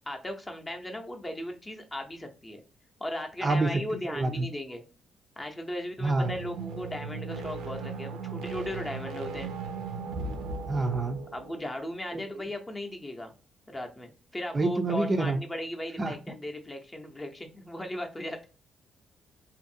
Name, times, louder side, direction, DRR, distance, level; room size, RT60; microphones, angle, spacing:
voice 1, 0.1-2.6 3.0-4.8 5.4-9.5 11.3-13.3 13.7-18.5, left 1 dB, 20° left, 3 dB, 0.6 m, -37 dB
voice 2, 3.4-3.8 4.1-4.5 6.0-6.3 10.7-11.2 12.1-12.2 14.5-15.4 16.0-16.1, right 2 dB, 30° right, 6 dB, 0.4 m, -27 dB
sound 1, 6.2-11.8, right 4 dB, 85° right, 0.5 m, -37 dB
2.6 x 2.5 x 2.6 m, 0.34 s
cardioid pair, 90°, 0 cm